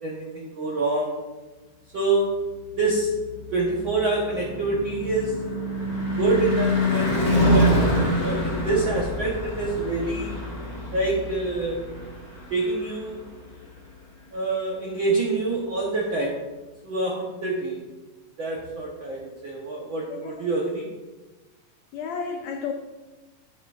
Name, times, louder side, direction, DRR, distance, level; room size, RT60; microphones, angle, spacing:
voice 1, 0.0-1.2 1.9-2.3 2.8-3.1 3.5-5.6 6.2-7.7 8.2-10.4 10.9-11.8 12.5-13.2 14.3-16.5 16.8-17.8 18.4-20.9, right 2 dB, 75° right, -3 dB, 1.1 m, -26 dB
Car passing by / Truck / Engine, 3.3-13.6, left 1 dB, 35° left, 1.6 m, -26 dB
voice 2, 21.9-22.7, left 6 dB, 90° left, 4 dB, 1.5 m, -32 dB
12.0 x 6.4 x 2.4 m, 1.2 s
omnidirectional pair, 3.7 m